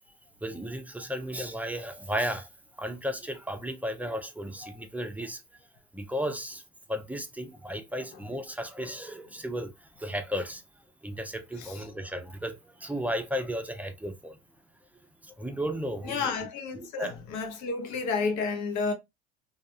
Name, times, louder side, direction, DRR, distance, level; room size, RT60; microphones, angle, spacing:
voice 1, 0.4-2.5 2.8-5.4 5.9-6.6 6.9-9.7 10.0-10.6 11.0-14.4 15.2-16.3 16.7-17.1, equal, 5° right, 0.5 m, -34 dB
voice 2, 16.0-18.9, left 4 dB, 60° left, 0.8 m, -31 dB
2.4 x 2.3 x 2.7 m
hypercardioid pair, 75°, 33 cm